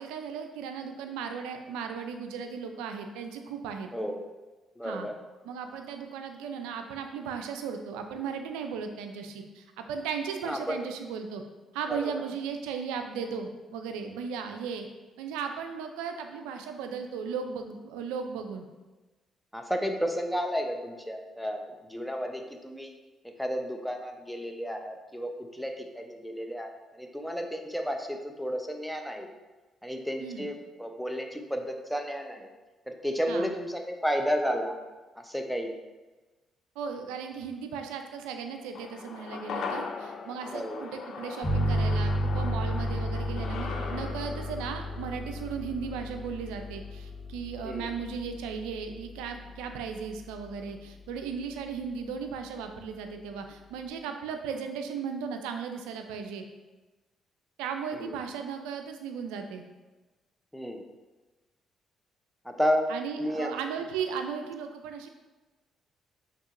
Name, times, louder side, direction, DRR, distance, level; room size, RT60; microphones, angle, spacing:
voice 1, 0.0-3.9 4.8-5.1 5.4-11.4 11.7-14.9 15.2-18.7 30.2-30.5 33.3-33.5 36.8-56.4 57.6-59.6 62.9-65.1, right 6 dB, 85° right, 6 dB, 0.4 m, -36 dB
voice 2, 3.9-4.2 4.8-5.1 10.4-10.8 11.9-12.2 19.5-22.9 23.4-29.3 29.8-32.5 32.9-34.8 35.2-35.7 40.5-40.9 47.6-47.9 57.9-58.2 60.5-60.8 62.4-62.9 63.2-63.5, equal, 5° left, 4 dB, 0.6 m, -32 dB
sound 1, 38.7-47.2 47.5-47.6, left 5 dB, 65° left, 0.4 m, -40 dB
sound 2, 41.4-50.7, equal, 40° left, 1.4 m, -33 dB
6.0 x 2.9 x 2.5 m, 1.2 s
hypercardioid pair, 50°, 0 cm